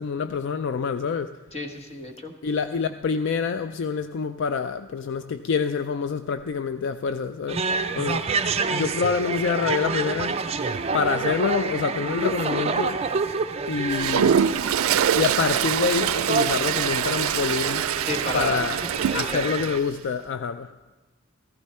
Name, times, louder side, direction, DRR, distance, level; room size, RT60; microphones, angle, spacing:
voice 1, 0.0-1.4 2.4-7.6 8.0-8.3 8.7-10.4 10.9-13.0 13.7-14.4 15.2-17.9 18.3-18.8 19.1-20.7, left 5 dB, 60° left, 0.3 m, -26 dB
voice 2, 1.5-2.3 18.1-18.8 19.1-19.6, left 2 dB, 30° left, 1.2 m, -30 dB
sound 1, 7.5-19.8, right 4 dB, 30° right, 0.5 m, -28 dB
Toilet flush, 13.9-19.7, right 8 dB, 90° right, 0.4 m, -24 dB
14.5 x 14.5 x 4.3 m
head